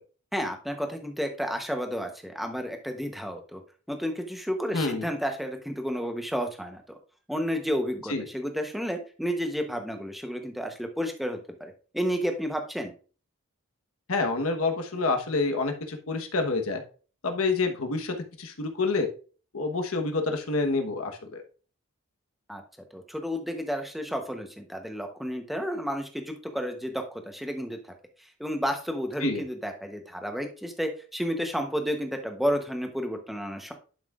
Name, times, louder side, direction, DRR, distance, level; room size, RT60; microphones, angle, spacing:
voice 1, 0.3-3.6 3.9-6.8 7.3-12.9 22.5-22.6 22.9-27.8 28.2-33.7, equal, ahead, 4 dB, 0.9 m, -31 dB
voice 2, 4.7-5.0 8.1-8.3 14.1-16.8 17.2-19.1 19.5-21.4 29.2-29.4, left 3 dB, 90° left, 5 dB, 1.2 m, -28 dB
11.0 x 5.8 x 2.4 m, 0.38 s
head